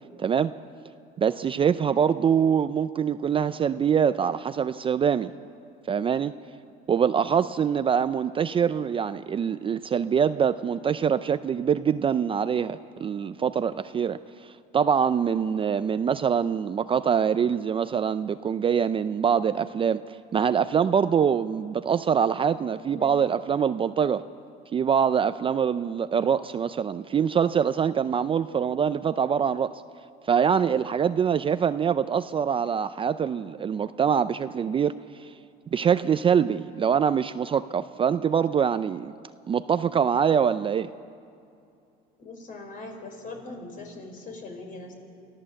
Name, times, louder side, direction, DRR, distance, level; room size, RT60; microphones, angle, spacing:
voice 1, 0.2-0.6 1.2-5.3 5.9-6.3 6.9-24.2 24.7-29.8 30.3-35.3 35.7-39.1 39.5-40.9, right 7 dB, 30° right, 12 dB, 0.4 m, -24 dB
voice 2, 22.7-23.2 42.2-44.9, left 2 dB, 45° left, 3 dB, 4.6 m, -41 dB
27.0 x 14.5 x 7.6 m, 2.5 s
cardioid pair, 115°, 19 cm